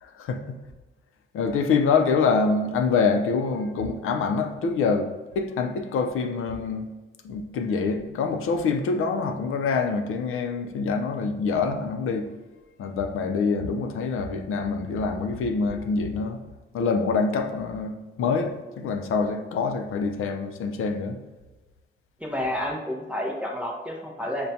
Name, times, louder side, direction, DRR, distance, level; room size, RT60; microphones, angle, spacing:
voice 1, 0.0-0.6 1.3-5.1 5.4-6.9 7.2-12.3 12.8-16.4 16.7-21.2, left 4 dB, 80° left, 6 dB, 0.4 m, -25 dB
voice 2, 22.2-24.5, left 1 dB, 5° right, -2 dB, 0.4 m, -30 dB
5.6 x 2.2 x 2.6 m, 1.2 s
wide cardioid pair, 140°, 21 cm